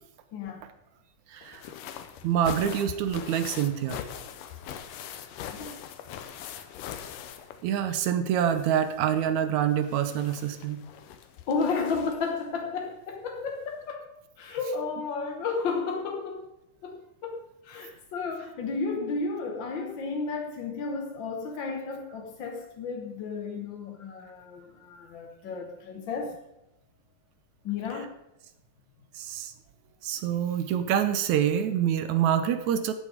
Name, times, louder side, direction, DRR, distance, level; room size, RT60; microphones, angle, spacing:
voice 1, 0.3-0.6 5.5-5.9 11.5-14.1 14.4-16.5 16.8-26.4 27.6-28.1, left 4 dB, 65° left, 3 dB, 1.2 m, -33 dB
voice 2, 1.3-1.7 2.2-4.0 7.6-10.8 29.2-29.5 30.0-32.9, right 9 dB, 70° right, 10 dB, 2.1 m, -26 dB
sound 1, 1.4-8.2 8.5-12.4 13.5-13.6 13.9-14.0, left 9 dB, 85° left, 2.5 m, -42 dB
14.5 x 8.9 x 5.0 m, 0.90 s
omnidirectional pair, 3.7 m